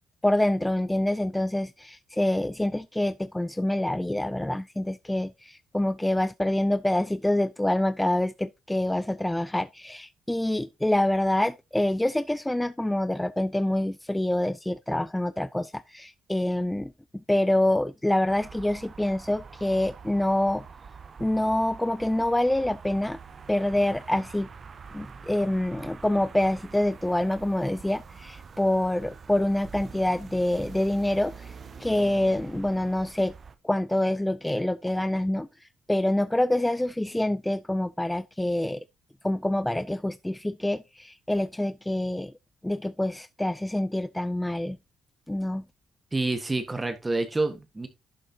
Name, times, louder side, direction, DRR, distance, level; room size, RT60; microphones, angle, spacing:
voice 1, 0.2-16.9 17.3-20.6 21.2-23.2 23.5-24.5 24.9-31.5 31.8-33.3 33.6-38.8 39.2-42.3 42.6-44.8 45.3-45.6, left 1 dB, 10° left, 0.4 m, -26 dB
sound 1, 18.3-33.6, right 5 dB, 45° right, 1.0 m, -45 dB
voice 2, 46.1-47.9, right 2 dB, 20° right, 1.5 m, -28 dB
11.5 x 6.6 x 2.8 m
cardioid pair, 90°, 0 cm